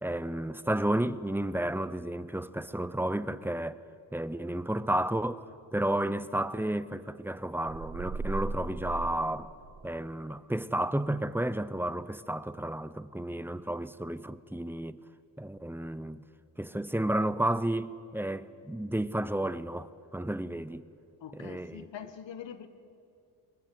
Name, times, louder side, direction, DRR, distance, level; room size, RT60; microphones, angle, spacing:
voice 1, 0.0-3.8 4.1-9.5 9.8-15.0 15.4-16.2 16.6-20.9 21.3-21.9, right 1 dB, 5° right, 0.9 m, -32 dB
sound 1, 7.7-10.1, right 3 dB, 60° right, 2.1 m, -37 dB
voice 2, 21.2-22.7, left 8 dB, 65° left, 1.8 m, -44 dB
23.5 x 20.0 x 9.3 m
supercardioid pair, 60°, 46 cm